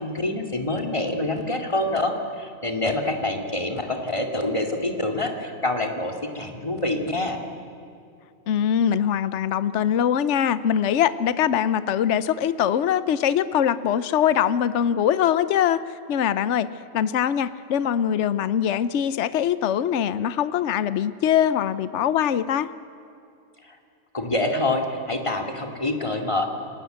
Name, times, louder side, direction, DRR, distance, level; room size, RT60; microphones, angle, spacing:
voice 1, 0.0-7.4 23.6-23.8 24.1-26.5, left 2 dB, 25° left, 3 dB, 2.5 m, -26 dB
voice 2, 8.5-15.8 16.1-16.7 16.9-22.7, left 9 dB, 70° left, 14 dB, 1.0 m, -22 dB
28.0 x 20.0 x 8.0 m, 2.5 s
omnidirectional pair, 1.3 m